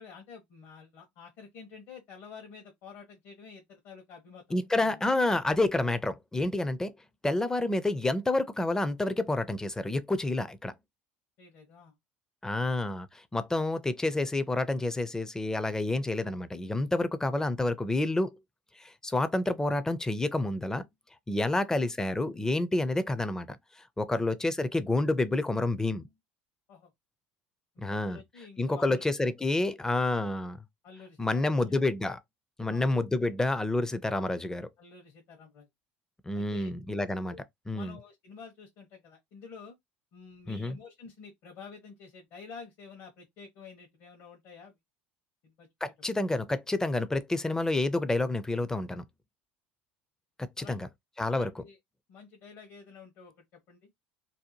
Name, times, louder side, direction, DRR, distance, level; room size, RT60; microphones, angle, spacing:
voice 1, 0.0-5.0 11.4-11.9 21.5-21.6 24.1-24.3 26.7-26.9 27.9-29.1 30.8-31.8 32.7-32.9 34.8-35.7 36.3-36.7 37.3-37.4 37.7-39.7 40.1-44.8 45.4-45.7 50.6-50.8 51.3-51.8 52.1-53.9, left 5 dB, 60° left, 1.0 m, -49 dB
voice 2, 4.5-7.0 7.2-10.7 12.4-18.4 18.8-20.8 21.3-23.6 24.0-26.1 27.8-28.2 28.6-30.6 31.2-32.2 32.6-34.7 36.3-37.4 37.7-38.0 40.5-40.8 45.8-49.0 50.4-50.9 51.2-51.6, left 2 dB, 10° left, 0.4 m, -29 dB
2.7 x 2.1 x 2.8 m
supercardioid pair, 90°, 6 cm